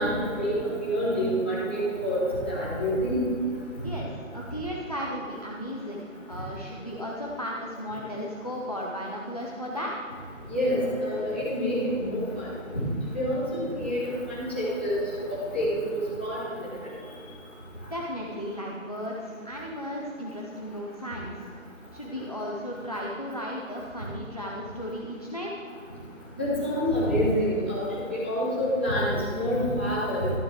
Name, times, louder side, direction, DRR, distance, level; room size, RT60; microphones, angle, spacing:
voice 1, 0.0-2.2 2.5-3.2 10.5-12.5 13.1-15.0 15.3-16.4 26.4-30.3, equal, 10° left, -11 dB, 1.0 m, -27 dB
voice 2, 3.8-9.9 17.9-21.4 21.9-25.6, equal, 30° left, -2 dB, 0.6 m, -35 dB
12.0 x 9.5 x 3.4 m, 2.3 s
figure-of-eight pair, 170°, 40 cm